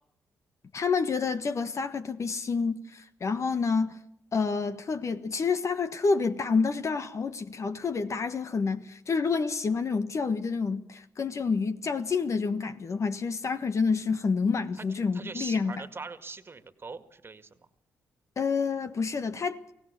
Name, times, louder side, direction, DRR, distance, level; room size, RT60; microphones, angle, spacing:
voice 1, 0.7-4.0 4.3-15.8 18.4-19.6, left 5 dB, 50° left, 1.4 m, -28 dB
voice 2, 15.1-17.6, right 4 dB, 35° right, 2.0 m, -41 dB
24.0 x 17.5 x 6.9 m
hypercardioid pair, 45°, 7 cm